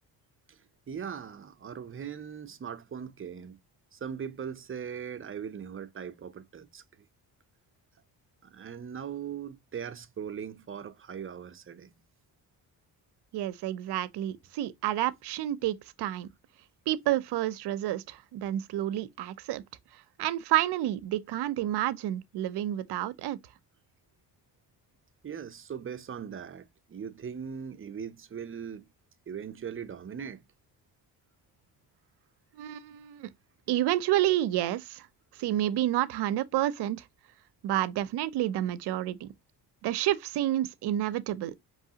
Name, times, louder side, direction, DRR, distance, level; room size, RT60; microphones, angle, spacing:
voice 1, 0.9-3.6 3.9-6.8 8.4-11.9 25.2-28.8 29.3-30.4, right 7 dB, 30° right, 0.6 m, -40 dB
voice 2, 13.3-16.3 16.9-19.6 20.2-23.4 32.6-33.3 33.7-35.1 35.4-37.0 37.6-39.3 39.8-41.5, right 13 dB, 75° right, 0.6 m, -29 dB
4.7 x 3.1 x 2.7 m
cardioid pair, 85°, 41 cm